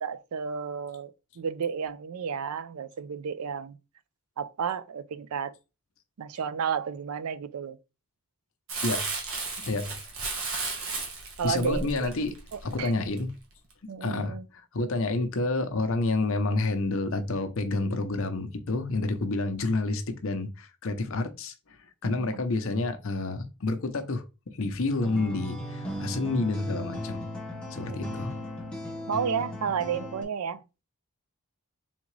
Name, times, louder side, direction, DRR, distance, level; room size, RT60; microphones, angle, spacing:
voice 1, 0.0-3.8 4.4-5.5 6.2-7.8 11.4-12.1 12.5-12.9 13.9-14.5 22.0-22.4 27.9-28.1 29.1-30.6, right 7 dB, 80° right, 0.4 m, -32 dB
Crumpling crinkling, 8.7-13.2 13.7-13.8, right 3 dB, 60° right, 1.2 m, -34 dB
voice 2, 9.6-10.0 11.4-12.3 12.6-13.3 14.0-21.5 22.0-27.2 27.7-28.3, left 2 dB, 60° left, 0.6 m, -29 dB
sound 1, 25.0-30.2, left 1 dB, 5° left, 0.8 m, -37 dB
3.7 x 3.6 x 3.2 m
head